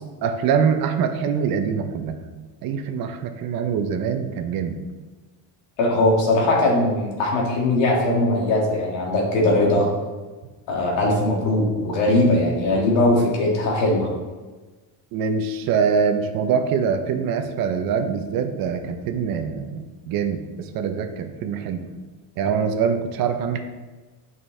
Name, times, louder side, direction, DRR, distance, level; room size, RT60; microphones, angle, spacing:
voice 1, 0.2-2.2 2.6-4.8 15.1-21.9 22.4-23.6, right 6 dB, 55° right, 7 dB, 0.7 m, -24 dB
voice 2, 5.8-9.9 10.7-14.1, left 1 dB, 80° left, -2 dB, 2.2 m, -20 dB
8.6 x 5.4 x 3.3 m, 1.3 s
cardioid pair, 170°, 44 cm